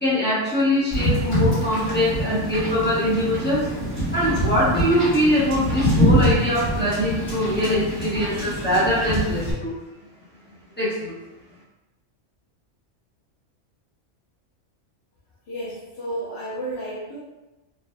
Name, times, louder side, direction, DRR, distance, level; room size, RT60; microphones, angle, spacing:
voice 1, 0.0-3.7 4.1-9.7 10.8-11.1, left 1 dB, 10° left, -9 dB, 0.7 m, -22 dB
Wind / Boat Water vehicle, 0.9-9.5, equal, 10° right, 1.1 m, -24 dB
voice 2, 15.5-17.2, right 1 dB, 60° left, -9 dB, 1.0 m, -32 dB
3.2 x 2.5 x 2.2 m, 1.0 s
omnidirectional pair, 1.3 m